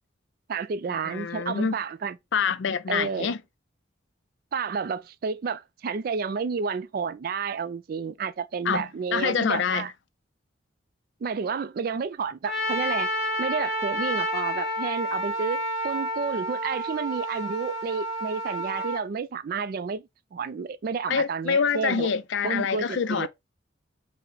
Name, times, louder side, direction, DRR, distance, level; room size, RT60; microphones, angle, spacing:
voice 1, 0.5-2.2 2.9-3.3 4.5-9.9 11.2-13.1 13.4-22.2 22.4-23.3, right 5 dB, 50° right, 0.3 m, -31 dB
voice 2, 1.0-1.8 2.3-3.4 8.7-8.8 9.1-9.9 21.1-23.3, left 6 dB, 70° left, 0.4 m, -26 dB
Trumpet, 12.4-19.0, right 1 dB, ahead, 1.5 m, -30 dB
5.6 x 2.1 x 3.8 m
head